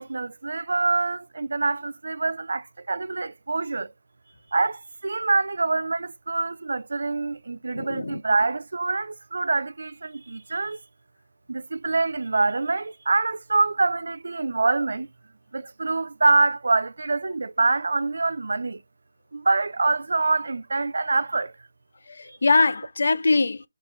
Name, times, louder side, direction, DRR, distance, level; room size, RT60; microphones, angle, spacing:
voice 1, 0.0-3.9 4.5-10.8 11.5-15.1 15.5-18.8 19.3-21.5 22.3-22.4, right 3 dB, 75° right, 0.3 m, -25 dB
voice 2, 7.7-8.2 22.1-23.6, left 3 dB, 60° left, 0.4 m, -22 dB
4.1 x 3.8 x 3.0 m
hypercardioid pair, 180°, 0 cm